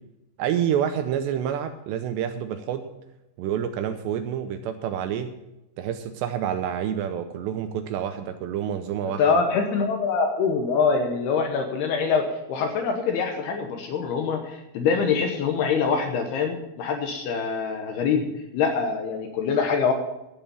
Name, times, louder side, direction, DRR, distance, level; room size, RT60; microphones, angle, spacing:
voice 1, 0.4-2.9 3.4-5.3 5.8-9.2, right 9 dB, 80° right, 8 dB, 2.6 m, -28 dB
voice 2, 9.0-18.2 18.5-19.9, left 5 dB, 75° left, 5 dB, 2.6 m, -24 dB
12.5 x 8.7 x 7.0 m, 0.93 s
omnidirectional pair, 5.5 m